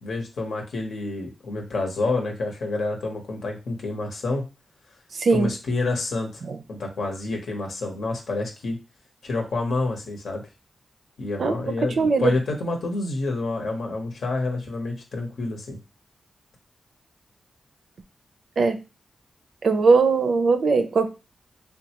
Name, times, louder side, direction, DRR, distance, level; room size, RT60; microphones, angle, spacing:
voice 1, 0.0-4.4 5.3-6.4 6.7-8.8 9.2-10.4 11.2-15.8, left 3 dB, 80° left, 2 dB, 0.9 m, -28 dB
voice 2, 5.1-5.5 6.5-6.6 11.4-12.3 18.6-18.8 19.6-21.1, right 4 dB, 70° right, 8 dB, 0.4 m, -20 dB
3.5 x 2.2 x 2.9 m, 0.29 s
cardioid pair, 70°, 0 cm